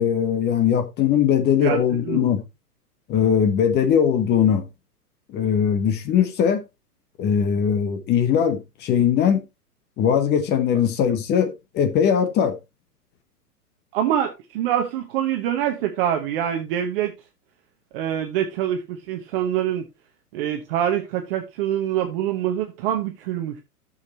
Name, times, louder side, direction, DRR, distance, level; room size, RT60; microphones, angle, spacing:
voice 1, 0.0-2.4 3.1-4.6 5.3-6.6 7.2-9.4 10.0-12.5, left 8 dB, 20° left, 1.2 m, -20 dB
voice 2, 1.6-2.3 13.9-17.1 17.9-19.8 20.3-23.6, right 10 dB, 35° right, 1.1 m, -25 dB
14.0 x 6.7 x 2.8 m
figure-of-eight pair, 110°, 47 cm